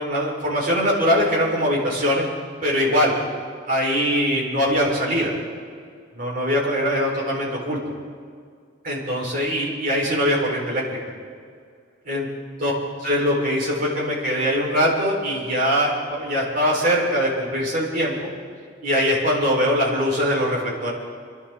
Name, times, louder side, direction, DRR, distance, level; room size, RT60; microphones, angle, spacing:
voice 1, 0.0-2.2 2.6-3.2 3.7-5.3 6.1-7.8 8.8-11.0 12.0-12.3 12.6-12.7 13.0-18.3 18.8-20.9, equal, 45° right, -5 dB, 4.5 m, -22 dB
28.0 x 11.5 x 3.9 m, 2.1 s
head